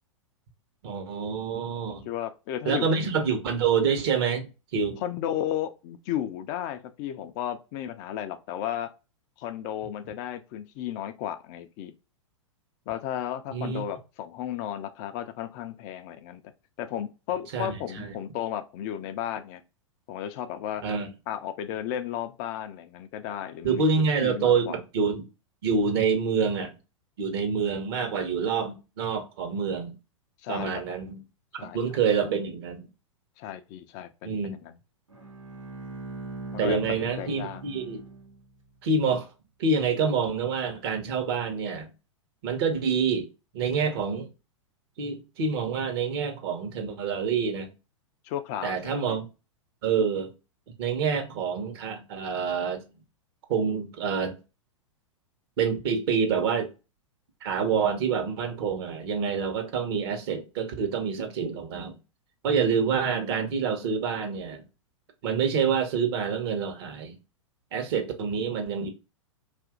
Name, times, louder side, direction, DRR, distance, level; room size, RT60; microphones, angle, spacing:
voice 1, 0.8-2.1 2.6-5.0 13.5-13.8 17.5-18.1 20.8-21.1 23.6-25.2 25.6-26.7 27.2-30.0 30.5-31.2 31.7-32.9 34.2-34.6 36.6-38.0 38.8-39.3 39.6-41.9 42.4-43.3 43.5-44.3 45.0-47.7 48.6-49.3 49.8-50.3 50.8-52.8 53.5-54.4 55.6-56.7 57.4-62.0 62.4-64.6 65.2-67.2 67.7-68.9, right 5 dB, 50° right, 0.9 m, -27 dB
voice 2, 2.1-3.1 5.0-8.9 9.4-11.9 12.9-16.4 16.8-19.6 20.1-20.9 21.3-24.7 30.4-30.8 31.5-31.8 33.4-34.8 36.5-37.6 48.2-49.2, left 11 dB, 35° left, 0.4 m, -34 dB
Bowed string instrument, 35.1-38.6, right 3 dB, 90° right, 1.0 m, -41 dB
2.7 x 2.5 x 3.5 m
figure-of-eight pair, 100°, 16 cm